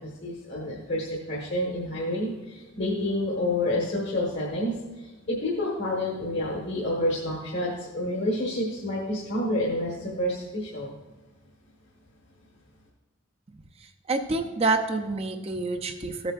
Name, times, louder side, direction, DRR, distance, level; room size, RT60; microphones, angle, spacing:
voice 1, 0.0-10.9, left 1 dB, 55° left, -4 dB, 1.4 m, -29 dB
voice 2, 13.8-16.3, right 3 dB, 30° right, 6 dB, 0.5 m, -28 dB
14.5 x 8.0 x 2.5 m, 1.1 s
head